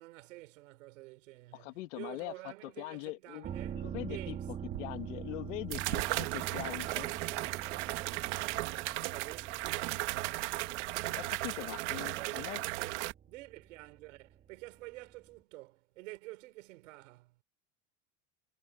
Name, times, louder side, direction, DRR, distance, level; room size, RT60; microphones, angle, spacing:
voice 1, 0.0-4.5 8.5-9.6 11.9-13.0 13.3-17.3, right 20 dB, 90° right, 5.2 m, -50 dB
voice 2, 1.5-2.3 2.6-3.5 3.8-4.4 4.8-7.1 11.1-12.6, left 21 dB, 75° left, 2.1 m, -42 dB
sound 1, 3.4-15.0 15.3-15.4, right 9 dB, 20° right, 3.4 m, -45 dB
sound 2, 4.7-4.8 5.7-13.1, right 20 dB, 65° right, 1.8 m, -36 dB
cardioid pair, 175°, 37 cm